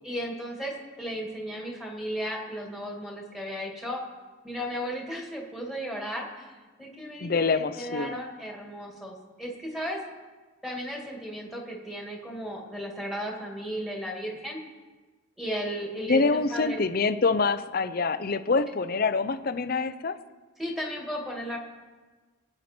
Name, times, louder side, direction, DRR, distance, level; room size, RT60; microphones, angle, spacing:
voice 1, 0.0-4.0 4.4-7.3 7.5-10.0 10.6-14.6 15.4-16.8 20.6-21.6, equal, ahead, -1 dB, 2.1 m, -35 dB
voice 2, 7.2-8.1 16.1-20.2, left 4 dB, 45° left, 11 dB, 0.6 m, -25 dB
21.5 x 8.9 x 4.4 m, 1.3 s
head